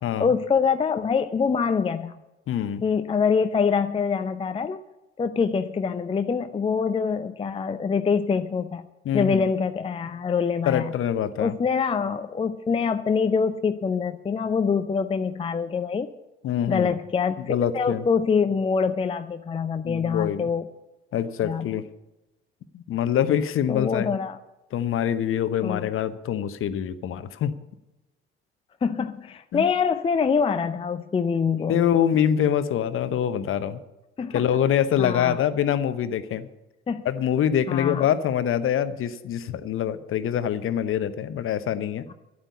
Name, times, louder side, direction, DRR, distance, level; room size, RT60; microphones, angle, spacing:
voice 1, 0.2-2.2 2.8-4.8 5.2-8.8 9.1-10.9 11.4-16.1 16.7-20.7 21.4-21.7 23.7-24.4 25.6-25.9 28.8-31.8 34.2-34.4 35.0-35.4 36.9-37.1 37.7-38.1, left 5 dB, 20° left, 9 dB, 0.5 m, -25 dB
voice 2, 2.5-2.8 9.0-9.4 10.7-11.6 16.4-16.9 17.5-18.0 19.8-20.5 21.1-21.8 22.7-24.2 24.7-27.5 29.5-29.7 31.6-33.8 34.3-36.5 37.0-42.0, left 9 dB, 40° left, 13 dB, 0.9 m, -25 dB
11.5 x 9.0 x 8.4 m, 1.0 s
figure-of-eight pair, 50°, 31 cm